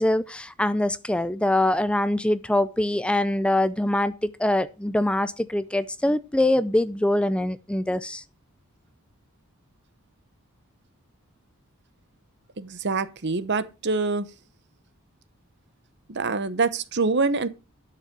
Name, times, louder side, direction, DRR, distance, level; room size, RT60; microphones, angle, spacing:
voice 1, 0.0-8.2, left 1 dB, 5° left, 0.5 m, -24 dB
voice 2, 12.6-14.3 16.1-17.5, right 4 dB, 55° right, 1.0 m, -25 dB
12.0 x 6.8 x 6.1 m
head